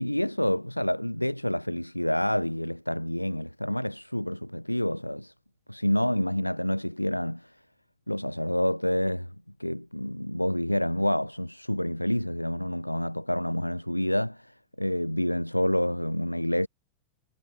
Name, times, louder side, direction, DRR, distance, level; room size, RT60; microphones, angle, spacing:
voice 1, 0.0-5.3 5.7-7.6 8.1-9.3 9.6-16.7, left 1 dB, 90° left, 5.6 m, -28 dB
figure-of-eight pair, 90°, 0 cm